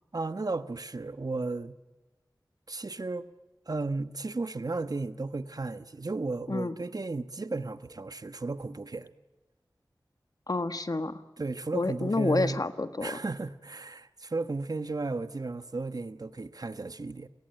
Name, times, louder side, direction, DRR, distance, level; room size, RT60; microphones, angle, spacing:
voice 1, 0.1-1.7 2.7-3.3 3.7-9.1 11.4-12.6 13.0-17.3, right 3 dB, 55° right, 1.1 m, -34 dB
voice 2, 10.5-11.2 11.7-13.2, left 2 dB, 55° left, 1.5 m, -29 dB
29.5 x 19.0 x 9.1 m
wide cardioid pair, 40°, 8 cm